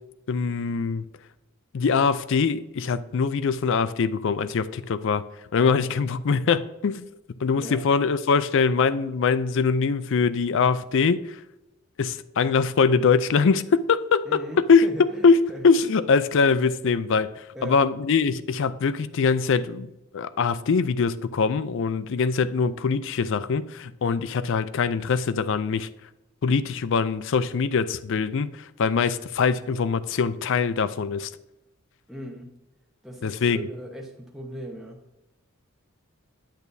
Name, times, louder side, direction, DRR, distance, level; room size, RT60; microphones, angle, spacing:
voice 1, 0.3-1.0 1.7-5.2 5.5-7.1 7.4-11.4 12.0-25.9 26.4-31.3 33.2-33.6, left 5 dB, 60° left, 15 dB, 0.4 m, -23 dB
voice 2, 7.5-7.8 14.2-15.6 17.5-17.8 32.1-32.6 33.0-35.0, equal, ahead, -2 dB, 0.9 m, -38 dB
9.0 x 8.1 x 2.7 m, 0.94 s
head